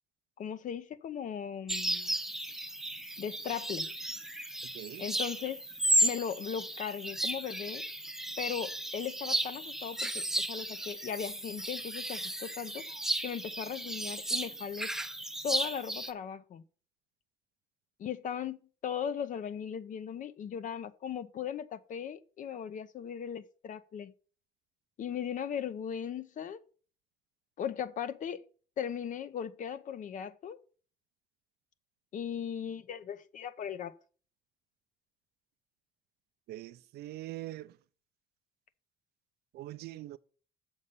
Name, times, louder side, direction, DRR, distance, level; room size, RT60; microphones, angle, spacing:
voice 1, 0.4-2.1 3.2-3.9 5.0-5.6 6.0-7.9 8.4-12.9 13.2-14.9 15.4-16.6 18.0-18.6 18.8-24.1 25.0-26.6 27.6-28.4 28.8-30.6 32.1-33.9, left 8 dB, 50° left, 0.7 m, -38 dB
sound 1, 1.7-16.1, right 1 dB, 5° right, 0.6 m, -34 dB
voice 2, 36.5-37.7 39.5-40.2, right 15 dB, 70° right, 0.5 m, -43 dB
7.2 x 5.4 x 6.8 m
cardioid pair, 110°, 17 cm